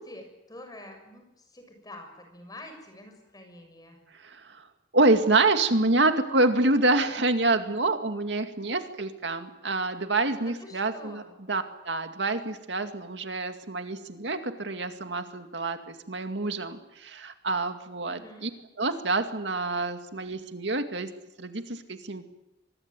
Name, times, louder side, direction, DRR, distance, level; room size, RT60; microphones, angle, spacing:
voice 1, 0.0-4.0 10.4-11.3 18.1-18.5, left 1 dB, 20° left, 5 dB, 6.8 m, -47 dB
voice 2, 4.2-4.7 4.9-11.2 11.5-18.5 18.8-21.1 21.4-22.2, right 2 dB, 80° right, 7 dB, 2.2 m, -27 dB
25.0 x 21.5 x 9.3 m, 0.94 s
head